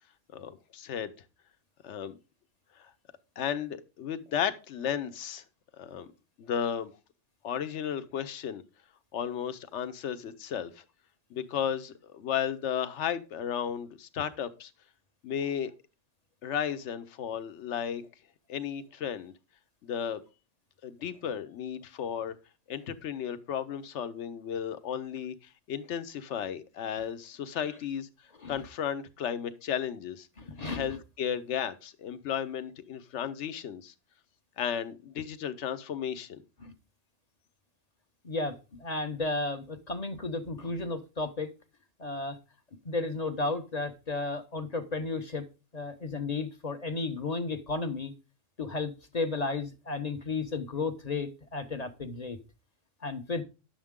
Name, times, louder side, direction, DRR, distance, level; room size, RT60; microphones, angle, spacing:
voice 1, 0.3-1.1 1.8-2.2 2.8-2.9 3.4-5.4 5.8-6.1 6.4-6.9 7.4-8.6 9.1-10.8 11.3-14.7 15.2-15.7 16.4-18.1 18.5-19.3 19.8-20.2 20.8-22.4 22.7-28.1 28.5-30.3 30.7-33.9 34.6-36.4, left 8 dB, 65° left, 1.1 m, -34 dB
voice 2, 30.4-31.0 36.6-36.7 38.2-41.5 42.0-42.4 42.8-45.4 45.7-48.1 48.6-52.4 53.0-53.4, left 3 dB, 35° left, 0.8 m, -33 dB
10.5 x 7.2 x 3.6 m
omnidirectional pair, 1.3 m